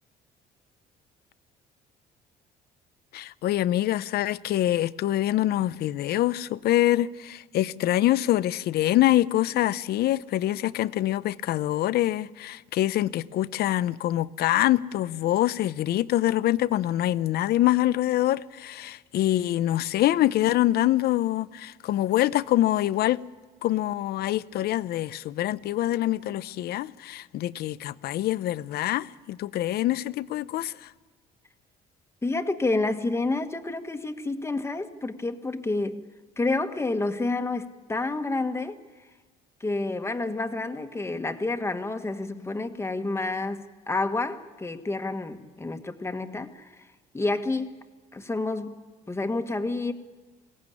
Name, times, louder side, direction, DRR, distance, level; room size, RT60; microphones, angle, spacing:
voice 1, 3.1-23.2 23.6-30.9, left 14 dB, 70° left, 0.7 m, -25 dB
voice 2, 32.2-36.0 36.4-38.8 39.6-46.9 47.1-47.8 48.1-49.9, left 2 dB, 15° left, 1.5 m, -29 dB
22.0 x 17.5 x 10.0 m
cardioid pair, 110°, 17 cm